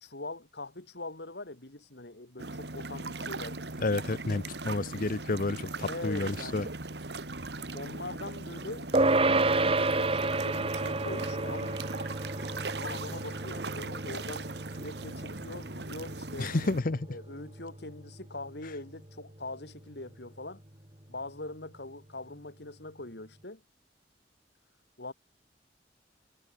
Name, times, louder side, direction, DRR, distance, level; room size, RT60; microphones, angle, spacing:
voice 1, 0.0-3.6 5.9-6.7 7.7-11.8 12.7-16.5 17.1-20.6 21.1-23.6 25.0-25.1, left 2 dB, 70° left, 2.9 m, -42 dB
sound 1, 2.4-16.8, right 3 dB, 70° right, 2.2 m, -39 dB
voice 2, 3.8-6.7 16.4-17.1, left 3 dB, 50° left, 0.8 m, -30 dB
sound 2, 8.9-18.6, right 2 dB, 35° right, 2.5 m, -31 dB
head